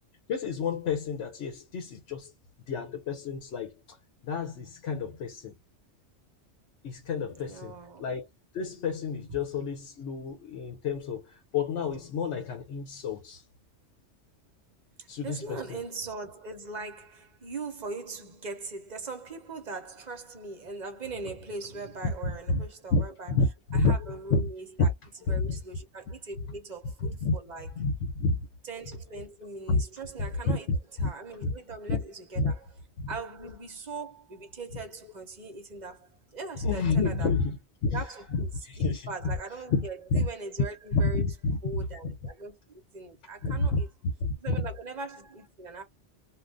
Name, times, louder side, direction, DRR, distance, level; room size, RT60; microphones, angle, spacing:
voice 1, 0.3-2.3 2.7-4.0 4.2-5.5 6.8-7.7 8.0-8.3 8.5-13.4 15.1-15.8 22.0-22.6 22.9-24.0 24.3-24.5 24.8-24.9 25.3-25.6 27.0-27.4 27.8-28.5 29.7-29.8 30.2-31.1 31.4-31.5 31.9-32.0 32.4-32.5 33.0-33.1 36.6-37.6 37.8-38.0 38.3-39.4 39.7-39.8 40.1-40.3 40.9-42.1 43.4-43.8 44.2-44.7, left 3 dB, 75° left, 1.0 m, -29 dB
voice 2, 7.3-8.1 15.0-23.3 23.7-24.9 25.3-27.7 28.6-30.7 31.0-32.6 33.1-37.3 37.9-38.5 39.1-41.2 41.6-43.9 44.4-45.8, right 3 dB, 40° right, 0.9 m, -40 dB
2.5 x 2.5 x 3.3 m
omnidirectional pair, 1.2 m